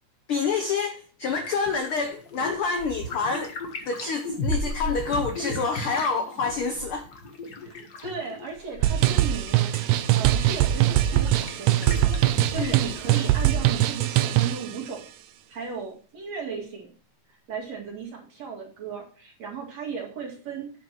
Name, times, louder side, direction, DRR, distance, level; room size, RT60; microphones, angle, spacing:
voice 1, 0.3-3.5 3.9-7.0 12.6-12.8, left 4 dB, 70° left, 6 dB, 1.3 m, -27 dB
sound 1, 1.3-13.5, left 2 dB, 45° left, 1.3 m, -36 dB
voice 2, 8.0-9.8 10.1-12.2 12.5-15.0 15.5-16.9 17.5-20.7, right 6 dB, 55° right, -1 dB, 3.4 m, -36 dB
sound 2, 8.8-14.7, right 13 dB, 85° right, 1.6 m, -22 dB
8.9 x 5.1 x 5.9 m, 0.41 s
omnidirectional pair, 3.6 m